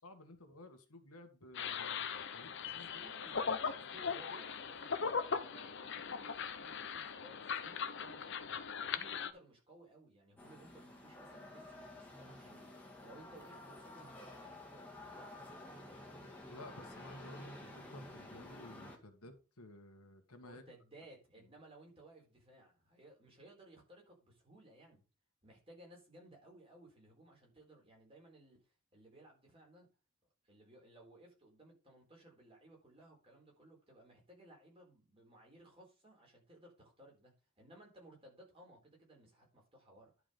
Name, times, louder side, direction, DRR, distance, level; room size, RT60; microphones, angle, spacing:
voice 1, 0.0-2.9 3.7-4.1 16.5-20.6, left 1 dB, 85° left, 1.8 m, -55 dB
sound 1, 1.5-9.3, left 6 dB, 55° left, 0.8 m, -39 dB
voice 2, 2.6-8.5 8.8-16.3 20.4-25.0 25.4-28.6 28.9-29.9 30.4-40.1, right 1 dB, 25° right, 4.1 m, -60 dB
sound 2, 10.4-19.0, left 1 dB, 5° left, 1.9 m, -51 dB
11.0 x 5.0 x 5.2 m
head